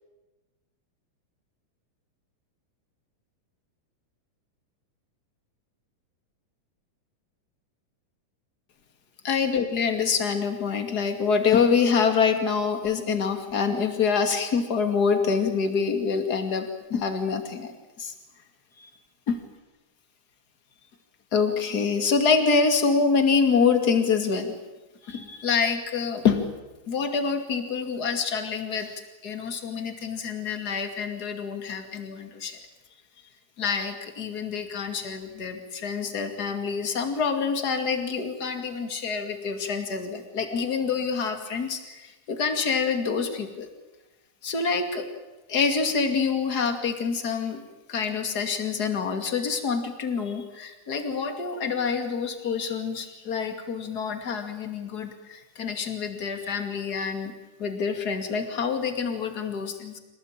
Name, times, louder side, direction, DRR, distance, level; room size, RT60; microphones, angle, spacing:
voice 1, 9.2-17.7 18.0-18.1 18.8-18.9 19.3-19.4 21.3-24.5 25.0-26.5 26.9-28.9 29.2-32.6 33.6-43.7 44.4-45.1 45.5-47.6 47.9-57.3 57.6-60.0, left 5 dB, 30° left, 6 dB, 2.6 m, -26 dB
27.5 x 18.0 x 8.9 m, 1.1 s
omnidirectional pair, 3.9 m